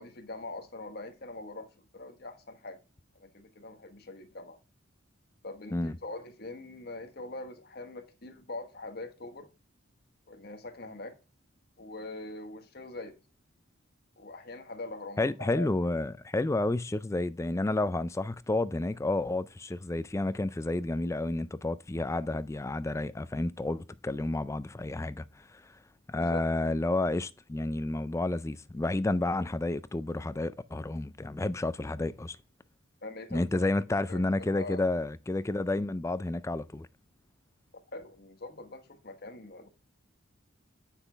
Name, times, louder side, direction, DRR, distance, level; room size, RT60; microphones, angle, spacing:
voice 1, 0.0-2.8 3.1-4.6 5.4-9.5 10.3-11.2 11.8-13.2 14.2-15.7 26.2-26.4 33.0-33.6 34.1-34.8 37.9-39.7, left 2 dB, 50° left, 1.2 m, -43 dB
voice 2, 15.2-25.6 26.1-32.4 33.3-36.9, left 2 dB, 15° left, 0.3 m, -30 dB
8.2 x 5.6 x 3.3 m
head